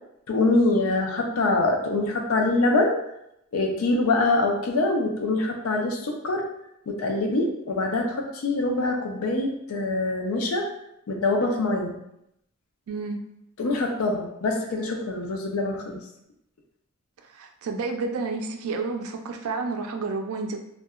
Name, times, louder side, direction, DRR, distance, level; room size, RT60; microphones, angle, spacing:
voice 1, 0.3-3.0 3.5-6.4 6.9-10.6 11.1-11.9 13.6-16.0, left 2 dB, 80° left, 2 dB, 0.5 m, -24 dB
voice 2, 12.9-13.2 17.3-20.6, right 4 dB, 80° right, 5 dB, 0.4 m, -30 dB
2.7 x 2.2 x 2.3 m, 0.80 s
head